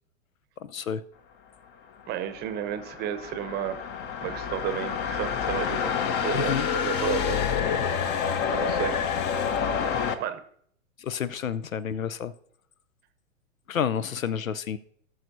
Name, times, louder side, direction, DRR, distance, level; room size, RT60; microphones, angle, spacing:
voice 1, 0.6-1.0 6.3-6.7 11.0-12.3 13.7-14.8, left 8 dB, 90° left, 15 dB, 0.6 m, -30 dB
voice 2, 2.1-3.8 4.2-5.9 6.2-7.4 8.5-9.0 10.2-10.4, right 10 dB, 25° right, 10 dB, 0.8 m, -32 dB
sound 1, 2.2-10.2, left 7 dB, 30° left, 0.7 m, -28 dB
18.5 x 6.3 x 2.7 m, 0.65 s
hypercardioid pair, 115°, 39 cm